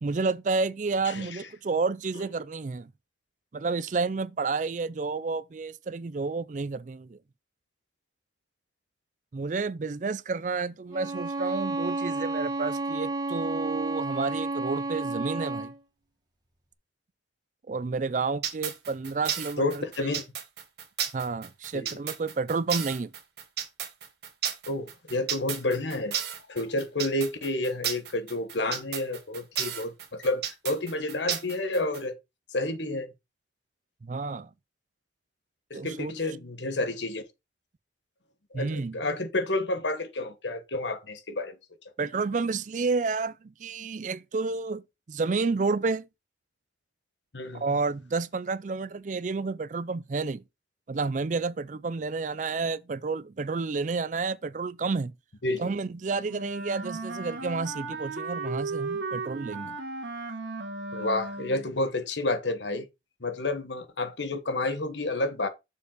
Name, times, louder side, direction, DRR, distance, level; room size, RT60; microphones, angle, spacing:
voice 1, 0.0-2.9 3.5-7.2 9.3-15.7 17.7-19.8 21.1-23.1 34.0-34.5 35.7-36.1 38.5-39.0 42.0-44.8 45.1-46.1 47.5-50.4 50.9-55.1 55.6-59.8, right 4 dB, 45° right, 0.4 m, -30 dB
voice 2, 1.0-1.4 19.6-20.2 21.7-21.9 24.7-26.2 26.5-32.1 32.5-33.1 35.7-37.2 38.5-41.5 47.3-47.6 55.4-55.7 60.9-62.9 63.2-65.5, left 2 dB, 80° left, 1.3 m, -30 dB
Bowed string instrument, 10.9-15.8, right 2 dB, 25° right, 1.8 m, -31 dB
sound 1, 18.4-32.0, right 9 dB, 65° right, 1.4 m, -33 dB
Wind instrument woodwind instrument, 56.3-61.7, right 3 dB, 80° right, 1.5 m, -35 dB
6.8 x 4.7 x 4.8 m
head